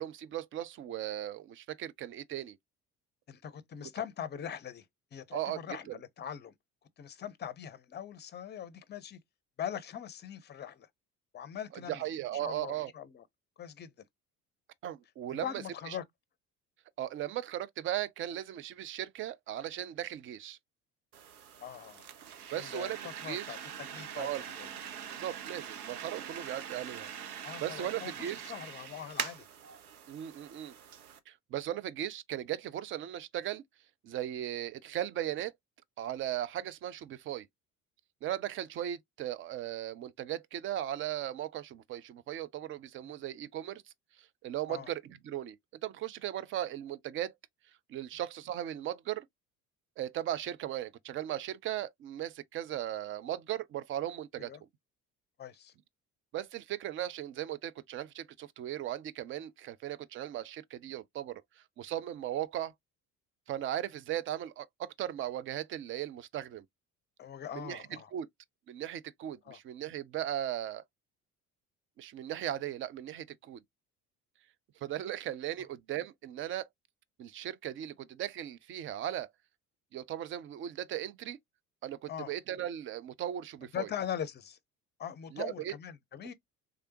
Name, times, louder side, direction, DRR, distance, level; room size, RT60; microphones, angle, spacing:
voice 1, 0.0-2.6 5.3-5.6 5.9-6.0 11.9-12.9 14.8-15.5 17.0-20.6 22.5-23.0 23.3-23.5 24.2-24.4 25.1-27.1 27.6-28.5 30.1-30.7 31.3-33.6 34.0-35.5 36.0-37.5 38.2-43.8 44.2-45.6 45.8-47.3 47.9-49.3 50.0-54.5 56.3-61.4 61.8-62.7 63.5-66.6 67.5-68.3 68.7-70.8 72.0-73.6 74.8-76.7 77.2-79.3 79.9-81.4 81.8-83.9 85.3-85.7, right 12 dB, 30° right, 0.4 m, -37 dB
voice 2, 3.3-4.9 5.1-6.5 7.0-9.2 9.6-10.9 11.3-12.1 12.3-13.2 13.6-13.9 15.3-16.0 21.6-22.1 22.6-22.9 23.2-23.6 23.9-24.7 27.4-29.5 44.7-44.9 54.4-54.6 55.4-55.7 67.2-68.1 69.4-69.6 82.1-82.3 83.7-84.6 85.0-86.3, left 9 dB, 25° left, 0.6 m, -41 dB
sound 1, 21.1-31.2, right 9 dB, 80° right, 0.7 m, -43 dB
3.5 x 3.3 x 2.8 m
figure-of-eight pair, 60°, 44 cm